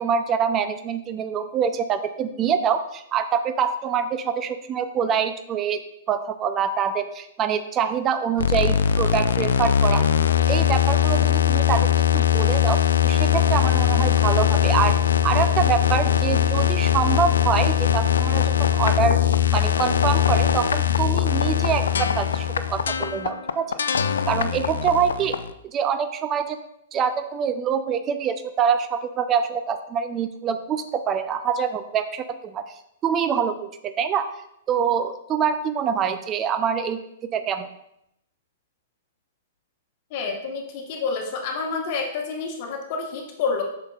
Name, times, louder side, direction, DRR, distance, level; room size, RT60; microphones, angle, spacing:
voice 1, 0.0-5.8 6.1-10.0 10.5-15.0 15.2-19.2 19.5-23.7 24.3-25.4 25.7-26.6 26.9-32.8 33.0-34.3 34.7-37.0 37.3-37.7, right 7 dB, 30° right, 9 dB, 0.4 m, -25 dB
sound 1, 8.4-25.5, left 9 dB, 75° left, 0.3 m, -21 dB
voice 2, 40.1-43.6, left 5 dB, 45° left, 2 dB, 1.2 m, -28 dB
6.9 x 5.8 x 2.4 m, 0.79 s
figure-of-eight pair, 110°, 0 cm